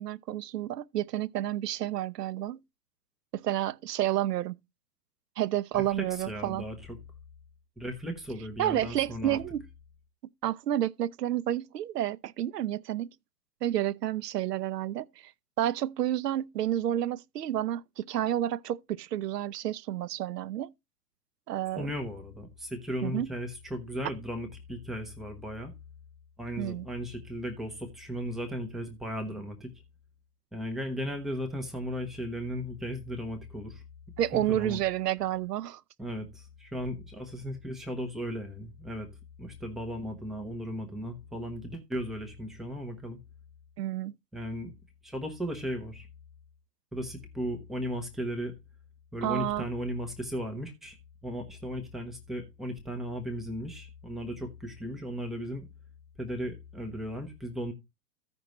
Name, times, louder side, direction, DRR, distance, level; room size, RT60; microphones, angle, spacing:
voice 1, 0.0-2.6 3.3-4.6 5.4-6.6 8.6-9.7 10.4-13.1 13.6-15.3 15.6-20.7 21.5-21.9 23.0-23.3 26.6-26.9 34.2-35.8 43.8-44.1 49.2-49.7, right 12 dB, 75° right, 0.6 m, -30 dB
voice 2, 5.7-7.0 7.8-9.4 21.8-25.7 26.4-29.7 30.5-33.8 34.3-34.8 36.0-39.1 39.4-43.2 44.3-44.7 45.0-46.1 46.9-48.5 49.1-51.0 51.2-55.7 56.2-57.7, equal, ahead, 0.4 m, -36 dB
14.5 x 5.2 x 3.0 m
figure-of-eight pair, 110°, 49 cm